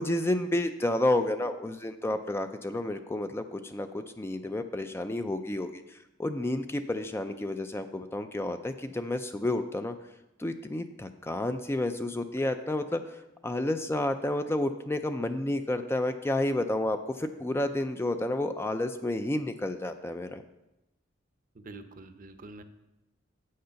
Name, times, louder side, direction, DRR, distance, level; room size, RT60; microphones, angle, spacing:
voice 1, 0.0-10.0 10.4-20.4, left 1 dB, 10° left, 8 dB, 0.4 m, -30 dB
voice 2, 21.5-22.6, right 2 dB, 45° right, 9 dB, 0.7 m, -46 dB
7.8 x 6.5 x 5.7 m, 0.94 s
head